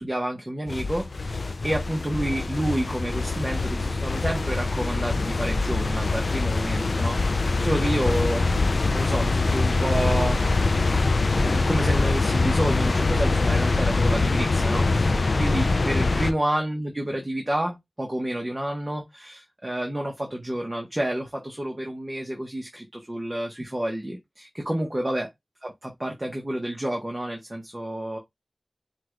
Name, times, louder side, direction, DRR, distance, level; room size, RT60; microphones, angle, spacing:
voice 1, 0.0-8.5 8.9-10.4 11.3-25.3 25.6-28.2, right 1 dB, 30° right, 1.1 m, -29 dB
sound 1, 0.7-16.3, left 3 dB, 85° left, 0.5 m, -23 dB
5.7 x 2.5 x 3.1 m
wide cardioid pair, 65°, 0 cm